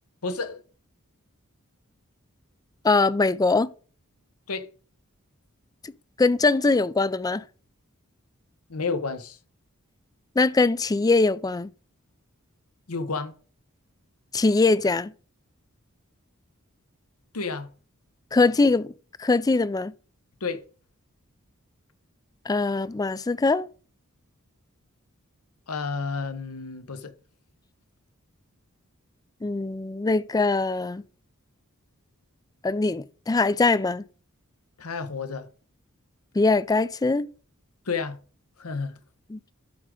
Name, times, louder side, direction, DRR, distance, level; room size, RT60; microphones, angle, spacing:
voice 1, 0.2-0.6 4.5-4.7 8.7-9.4 12.9-13.3 17.3-17.7 20.4-20.6 25.7-27.1 34.8-35.5 37.8-38.2 38.6-38.9, left 4 dB, 85° left, 1.0 m, -30 dB
voice 2, 2.8-3.7 6.2-7.4 10.4-11.7 14.3-15.1 18.3-18.9 19.2-19.9 22.5-23.7 29.4-31.0 32.6-34.0 36.4-37.3 39.3-39.4, left 3 dB, 15° left, 0.4 m, -22 dB
12.5 x 4.9 x 3.8 m
head